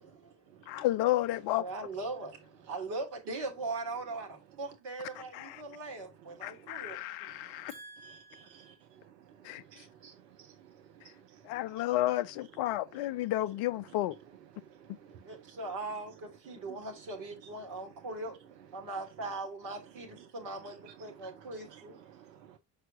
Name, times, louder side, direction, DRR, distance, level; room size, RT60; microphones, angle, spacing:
voice 1, 0.7-1.6 5.3-5.6 6.4-7.7 9.4-9.6 11.4-14.2, left 15 dB, 50° left, 0.6 m, -31 dB
voice 2, 1.5-7.0 7.7-8.8 15.2-18.3 18.7-22.0, right 2 dB, 50° right, 2.8 m, -40 dB
voice 3, 6.6-6.9 7.3-7.7 8.0-11.7 14.5-15.4 20.2-20.3 20.6-22.6, right 9 dB, 75° right, 0.8 m, -56 dB
6.6 x 5.6 x 2.6 m
figure-of-eight pair, 55°, 50 cm